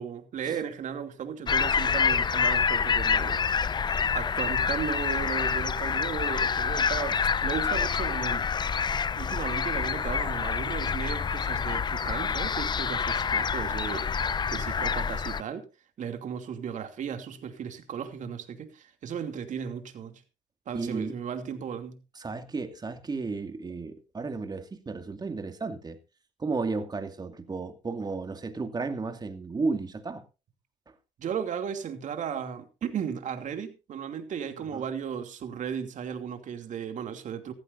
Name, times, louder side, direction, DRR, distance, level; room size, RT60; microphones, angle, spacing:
voice 1, 0.0-3.4 4.1-8.5 9.1-15.6 16.0-20.2 20.7-22.0 31.2-37.5, right 7 dB, 55° right, 2.8 m, -35 dB
sound 1, 1.5-15.4, left 6 dB, 30° left, 0.6 m, -27 dB
voice 2, 20.7-21.1 22.2-26.0 26.4-30.2 34.7-34.8, right 4 dB, 25° right, 2.4 m, -33 dB
15.5 x 14.0 x 2.7 m
supercardioid pair, 80°, 16 cm